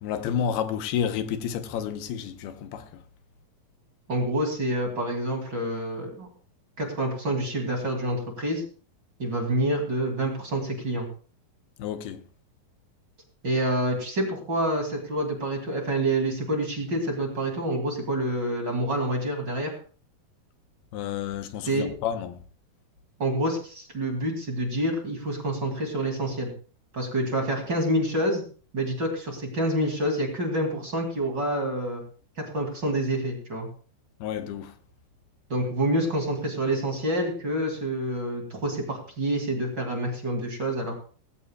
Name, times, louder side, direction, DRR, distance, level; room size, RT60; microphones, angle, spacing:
voice 1, 0.0-2.8 11.8-12.2 20.9-22.4 34.2-34.7, left 8 dB, 85° left, 2.9 m, -30 dB
voice 2, 4.1-6.3 6.8-8.6 9.2-11.1 13.4-19.7 21.7-21.9 23.2-26.5 26.9-28.4 28.7-32.0 32.4-33.7 35.5-41.0, right 1 dB, 35° right, 2.5 m, -27 dB
18.5 x 16.0 x 2.3 m
omnidirectional pair, 4.4 m